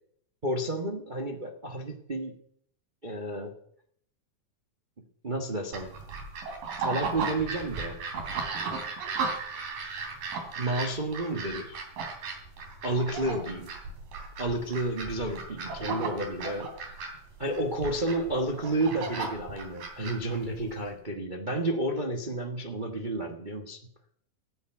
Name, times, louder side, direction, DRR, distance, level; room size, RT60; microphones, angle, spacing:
voice 1, 0.4-2.4 3.0-3.5 5.2-6.0 6.8-8.0 10.6-11.8 12.8-13.7 14.4-17.0 17.4-23.8, right 1 dB, 60° right, 2 dB, 0.5 m, -31 dB
sound 1, 5.7-20.9, right 4 dB, 80° right, 4.7 m, -36 dB
15.0 x 9.8 x 9.0 m, 0.66 s
omnidirectional pair, 3.8 m